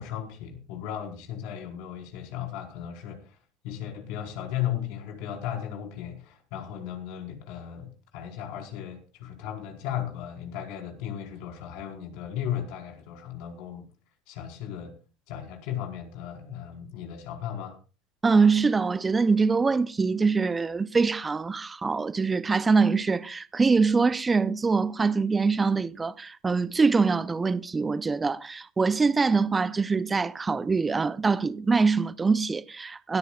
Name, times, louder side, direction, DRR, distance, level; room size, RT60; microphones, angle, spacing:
voice 1, 0.0-3.4 3.6-13.8 14.3-14.9 15.3-17.8, left 10 dB, 65° left, 4.6 m, -36 dB
voice 2, 18.2-33.2, right 4 dB, 20° right, 0.6 m, -24 dB
21.5 x 13.5 x 2.4 m
hypercardioid pair, 95°, 0 cm